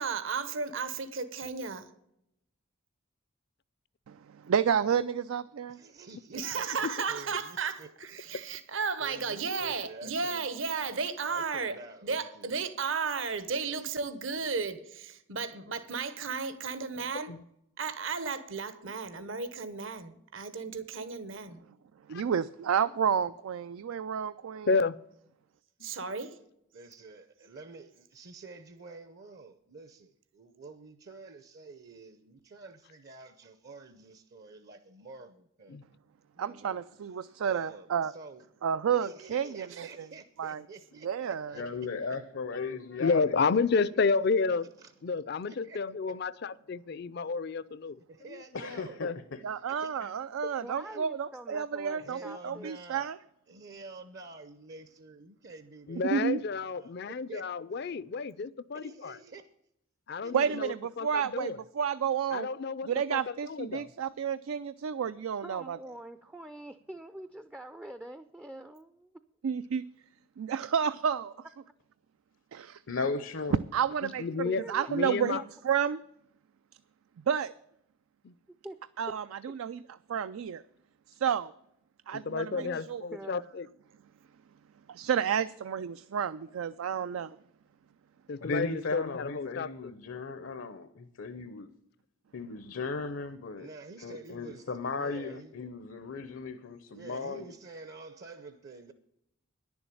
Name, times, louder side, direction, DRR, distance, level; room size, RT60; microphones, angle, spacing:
voice 1, 0.0-1.9 6.3-11.8 12.0-17.3 17.8-21.6 25.8-26.3 39.8-39.9, right 5 dB, 70° right, 1.0 m, -34 dB
voice 2, 4.1-5.8 22.1-24.7 36.4-38.1 38.6-39.9 40.4-40.6 41.0-41.6 49.4-53.1 56.1-56.4 60.3-60.8 61.0-62.5 62.9-65.8 69.4-69.8 70.4-71.3 72.5-72.8 73.7-74.2 74.7-76.0 77.3-77.5 79.0-79.8 80.1-80.6 81.2-81.5 82.1-83.0 84.9-87.4, right 7 dB, 90° right, 0.4 m, -30 dB
voice 3, 5.7-7.9 9.0-10.5 11.2-12.6 13.6-13.9 26.7-35.8 36.3-36.8 37.2-38.5 38.9-41.6 43.7-44.1 44.5-44.9 45.4-45.8 46.1-46.2 48.1-49.0 49.7-50.3 50.8-51.0 52.0-53.1 53.5-57.5 58.7-59.5 60.2-60.6 93.6-95.5 96.9-98.9, right 3 dB, 50° right, 0.7 m, -49 dB
voice 4, 24.6-25.0 25.8-25.9 35.7-35.8 42.5-44.7 45.0-48.0 48.3-48.4 49.0-49.2 55.9-59.2 60.1-61.6 62.3-63.9 74.0-74.6 74.9-75.4 78.2-78.3 82.1-83.7 88.3-89.9, left 4 dB, 50° left, 0.4 m, -31 dB
voice 5, 41.5-43.8 48.5-49.4 50.0-50.1 72.9-73.6 88.4-91.7 92.3-93.7 94.0-97.5, left 3 dB, 75° left, 0.8 m, -36 dB
voice 6, 50.6-52.7 65.4-69.1 74.0-74.1 74.4-75.4 78.5-78.8 79.1-79.2 82.5-82.8 83.1-83.4, right 1 dB, 5° right, 0.4 m, -45 dB
10.5 x 7.1 x 8.4 m
head